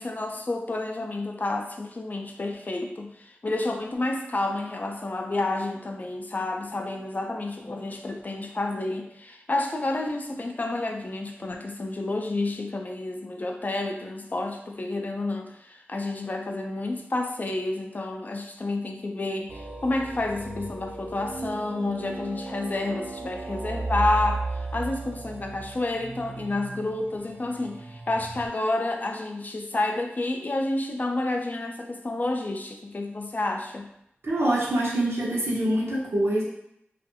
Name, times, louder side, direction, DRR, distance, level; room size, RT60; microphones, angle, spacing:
voice 1, 0.0-33.9, left 2 dB, 45° left, 3 dB, 0.4 m, -30 dB
sound 1, 19.5-28.5, right 3 dB, 45° right, 0.4 m, -35 dB
voice 2, 34.2-36.4, right 1 dB, 85° right, -5 dB, 0.7 m, -25 dB
2.6 x 2.4 x 2.6 m, 0.77 s
cardioid pair, 50°, 4 cm